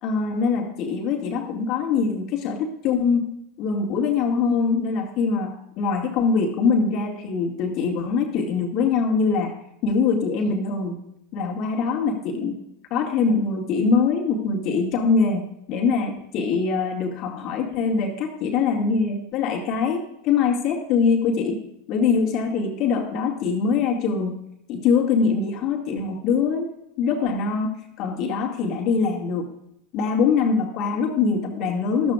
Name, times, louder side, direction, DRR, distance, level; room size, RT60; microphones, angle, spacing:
voice 1, 0.0-9.5 9.8-11.0 11.3-12.6 12.9-21.6 21.9-24.4 24.7-26.7 27.0-27.7 28.0-29.5 29.9-32.1, left 5 dB, 50° left, 2 dB, 2.2 m, -23 dB
13.5 x 12.5 x 2.5 m, 0.79 s
hypercardioid pair, 85°, 0 cm